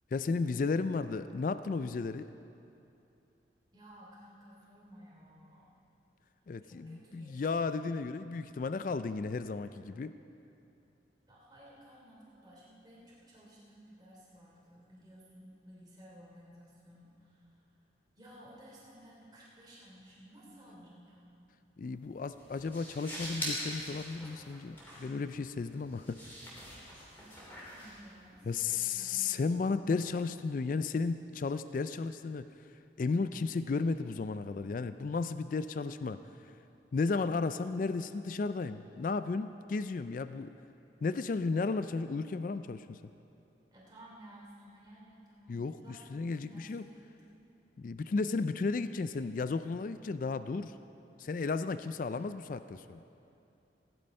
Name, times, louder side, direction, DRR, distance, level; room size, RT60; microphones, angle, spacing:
voice 1, 0.1-2.3 6.5-10.1 21.8-26.2 28.5-32.5 33.0-36.2 36.9-40.5 41.0-43.0 45.5-46.8 47.8-50.8 51.2-53.0, left 4 dB, 45° left, 12 dB, 0.3 m, -34 dB
voice 2, 3.7-5.8 6.4-7.7 11.3-17.6 18.2-21.2 27.1-29.3 43.7-47.3, equal, 25° right, -6 dB, 3.0 m, -55 dB
sound 1, 21.8-28.7, equal, 10° left, 3.3 m, -44 dB
17.0 x 11.0 x 5.3 m, 2.7 s
head